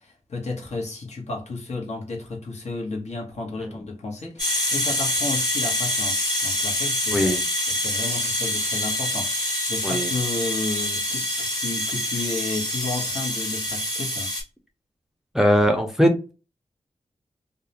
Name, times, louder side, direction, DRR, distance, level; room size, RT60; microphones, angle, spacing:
voice 1, 0.0-7.4 7.7-14.3, left 3 dB, 65° left, 0.9 m, -32 dB
sound 1, 4.2-4.3 4.5-5.2 5.9-7.2 7.5-14.2, right 5 dB, 70° right, 0.5 m, -40 dB
sound 2, 4.4-14.4, left 1 dB, 35° left, 1.0 m, -26 dB
voice 2, 7.1-7.4 9.8-10.1 15.3-16.3, equal, 5° right, 0.4 m, -20 dB
2.3 x 2.0 x 2.7 m
wide cardioid pair, 110°, 12 cm